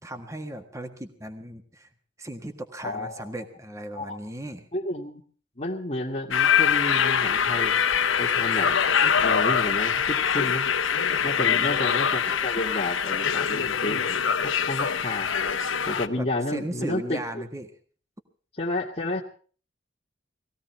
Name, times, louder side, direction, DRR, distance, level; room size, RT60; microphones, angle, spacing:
voice 1, 0.0-1.9 2.2-4.7 11.4-11.9 16.2-17.7, right 1 dB, 15° right, 6 dB, 1.6 m, -37 dB
voice 2, 2.8-3.3 3.9-4.2 4.7-5.2 5.6-7.7 8.2-8.8 9.2-10.7 11.2-15.3 15.9-17.4 18.6-19.2, left 1 dB, 35° left, -4 dB, 2.0 m, -31 dB
sound 1, 6.3-16.1, left 7 dB, 90° left, 1.1 m, -24 dB
20.0 x 15.5 x 4.5 m, 0.42 s
head